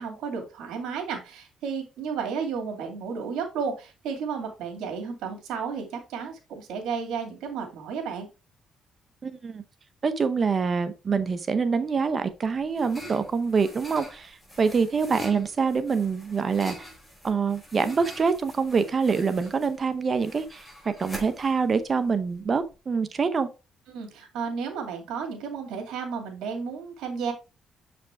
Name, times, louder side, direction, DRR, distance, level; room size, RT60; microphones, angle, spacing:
voice 1, 0.0-8.3 23.9-27.3, right 6 dB, 85° right, 2.5 m, -33 dB
voice 2, 9.2-9.6 10.0-16.9 17.2-23.5, right 5 dB, 40° right, 0.8 m, -25 dB
sound 1, 12.1-22.7, equal, 5° left, 4.7 m, -45 dB
7.5 x 5.1 x 3.5 m
cardioid pair, 90°, 0 cm